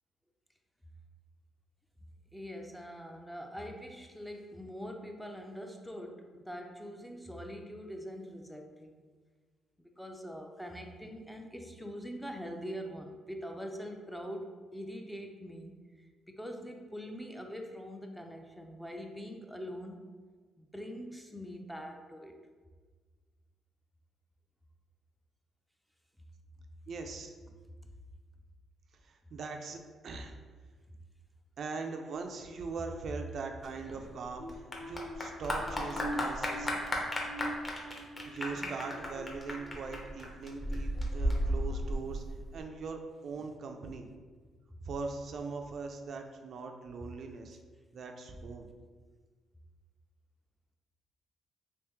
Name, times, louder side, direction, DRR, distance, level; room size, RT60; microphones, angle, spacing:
voice 1, 2.3-8.9 9.8-15.8 16.3-20.0 20.6-22.4 43.4-43.5 43.9-44.0, equal, ahead, 3 dB, 0.4 m, -43 dB
voice 2, 26.9-27.3 29.0-30.3 31.6-36.7 38.3-42.2 42.5-44.1 44.9-47.6 47.9-48.7, right 4 dB, 60° right, 4 dB, 0.4 m, -41 dB
Clapping / Applause, 33.6-42.6, equal, 25° left, 0.8 m, -35 dB
sound 1, 34.4-40.0 40.5-40.8 41.3-41.5, equal, 75° left, 0.7 m, -45 dB
3.4 x 3.0 x 3.0 m, 1.4 s
cardioid pair, 90°, 0 cm